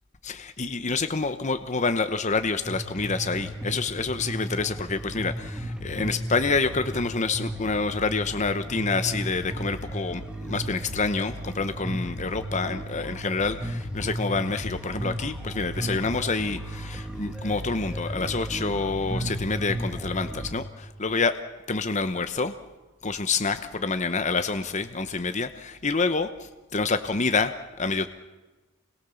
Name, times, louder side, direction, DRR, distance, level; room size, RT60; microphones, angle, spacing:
voice 1, 0.2-21.4 21.7-22.5 23.0-28.1, left 4 dB, 35° left, 10 dB, 0.9 m, -27 dB
sound 1, 2.7-20.6, right 1 dB, 5° right, 1.5 m, -34 dB
28.5 x 22.0 x 7.1 m, 1.2 s
head